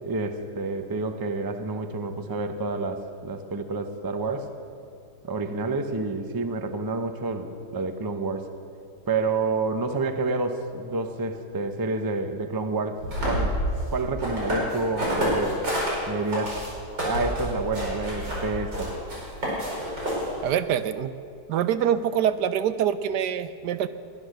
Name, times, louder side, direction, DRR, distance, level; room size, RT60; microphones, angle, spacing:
voice 1, 0.0-4.5 5.2-8.4 9.1-13.6 13.9-15.6 16.1-16.6 17.0-19.0, right 3 dB, 25° right, 7 dB, 0.5 m, -29 dB
sound 1, 13.0-15.9 16.3-20.5, equal, 90° right, 6.0 m, -28 dB
voice 2, 20.4-21.1 21.5-23.9, right 9 dB, 75° right, 12 dB, 1.2 m, -25 dB
22.0 x 9.8 x 6.6 m, 2.5 s
omnidirectional pair, 1.9 m